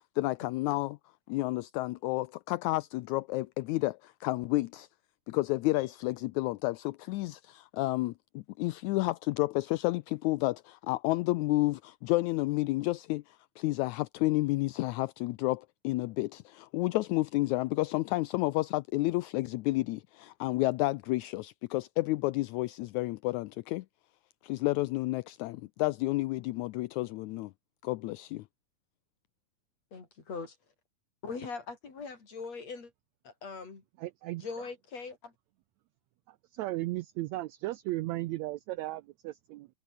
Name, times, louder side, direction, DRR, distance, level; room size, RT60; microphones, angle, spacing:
voice 1, 0.2-1.0 1.3-4.9 5.3-23.9 24.4-27.5 27.8-28.4, left 19 dB, 80° left, 1.7 m, -31 dB
voice 2, 29.9-30.6 31.2-32.9 33.2-33.8 34.3-35.3, left 4 dB, 50° left, 5.7 m, -41 dB
voice 3, 34.0-34.4 36.5-39.7, right 17 dB, 85° right, 1.6 m, -35 dB
omnidirectional pair, 3.8 m